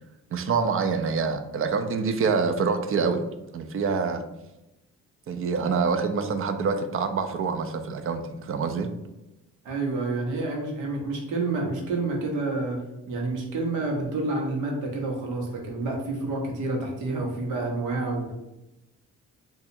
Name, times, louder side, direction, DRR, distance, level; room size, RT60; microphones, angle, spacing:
voice 1, 0.3-3.3 3.5-4.2 5.3-8.9, right 5 dB, 45° right, 8 dB, 0.5 m, -26 dB
voice 2, 9.6-12.8 13.1-18.3, right 2 dB, 85° right, 0 dB, 0.9 m, -29 dB
2.8 x 2.4 x 4.2 m, 0.96 s
cardioid pair, 90°, 30 cm